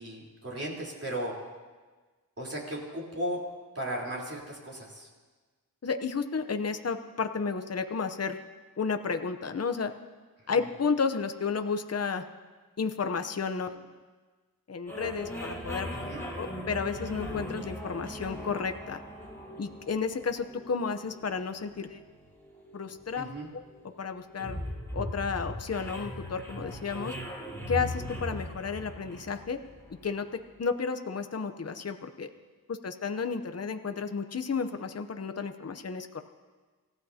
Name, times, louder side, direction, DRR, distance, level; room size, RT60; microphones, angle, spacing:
voice 1, 0.0-1.4 2.4-3.4 3.7-5.1 16.1-16.2 23.2-23.5, right 1 dB, 40° right, -4 dB, 3.8 m, -35 dB
voice 2, 5.8-8.4 8.8-9.9 10.5-12.2 12.8-13.8 14.7-15.9 16.4-19.0 19.6-22.0 22.7-23.2 23.5-23.6 24.0-24.6 24.9-27.1 27.7-29.6 30.0-30.3 30.6-32.3 32.7-36.2, left 5 dB, 40° left, 7 dB, 0.8 m, -32 dB
sound 1, 14.9-30.3, equal, 5° left, 2.9 m, -39 dB
27.0 x 15.0 x 2.8 m, 1.4 s
wide cardioid pair, 70°, 37 cm